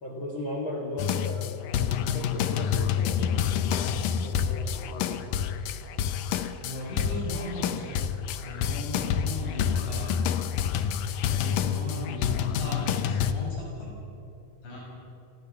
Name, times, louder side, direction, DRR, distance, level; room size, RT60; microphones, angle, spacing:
voice 1, 0.0-5.5, left 1 dB, 35° left, 0 dB, 2.2 m, -37 dB
sound 1, 1.0-13.3, left 8 dB, 90° left, 1.9 m, -28 dB
voice 2, 6.6-8.0 8.4-10.1 11.2-13.9 14.6-14.8, left 1 dB, 70° left, -4 dB, 9.3 m, -37 dB
30.0 x 27.0 x 5.4 m, 2.8 s
omnidirectional pair, 5.4 m